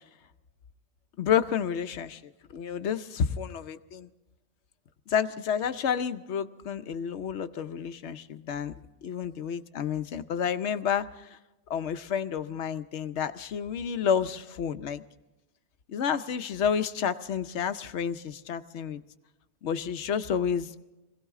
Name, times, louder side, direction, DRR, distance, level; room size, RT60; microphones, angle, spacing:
voice 1, 1.2-2.2 2.5-4.1 5.1-8.7 9.0-11.3 11.7-15.0 15.9-19.0 19.6-20.8, left 7 dB, 85° left, 11 dB, 1.0 m, -30 dB
22.0 x 16.5 x 3.6 m, 1.1 s
omnidirectional pair, 1.1 m